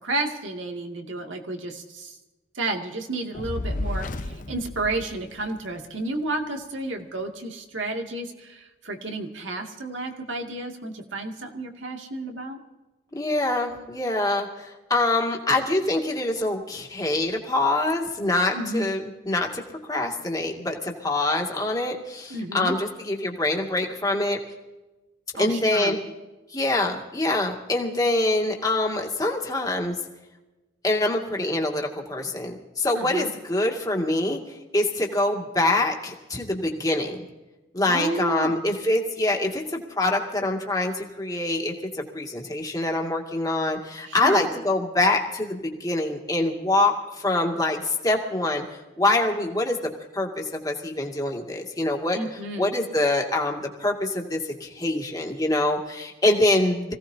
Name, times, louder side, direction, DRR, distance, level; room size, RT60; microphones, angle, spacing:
voice 1, 0.0-2.2 2.5-12.6 18.5-18.9 22.3-22.8 25.3-26.0 32.9-33.3 37.9-38.7 44.0-44.5 52.1-52.7, right 2 dB, 80° right, 2 dB, 2.4 m, -31 dB
Fire, 3.3-5.8, left 2 dB, 45° left, 0.7 m, -32 dB
voice 2, 13.1-19.6 19.9-24.4 25.4-26.0 26.5-29.9 30.8-34.4 34.7-37.2 37.7-48.6 49.0-52.2 52.6-56.9, left 2 dB, 20° left, 1 dB, 2.2 m, -25 dB
26.0 x 17.0 x 2.8 m, 1.1 s
head